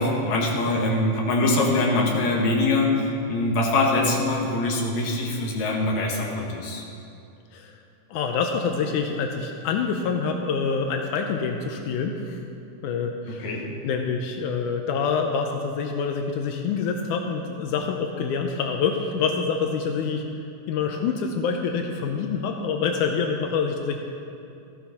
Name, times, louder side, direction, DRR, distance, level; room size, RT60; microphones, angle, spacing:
voice 1, 0.0-6.8 13.3-13.7, left 2 dB, 65° left, 0 dB, 2.7 m, -23 dB
voice 2, 8.1-12.4 12.8-20.2 20.7-24.0, left 5 dB, 80° left, 4 dB, 2.1 m, -26 dB
14.5 x 11.5 x 4.2 m, 2.6 s
omnidirectional pair, 3.6 m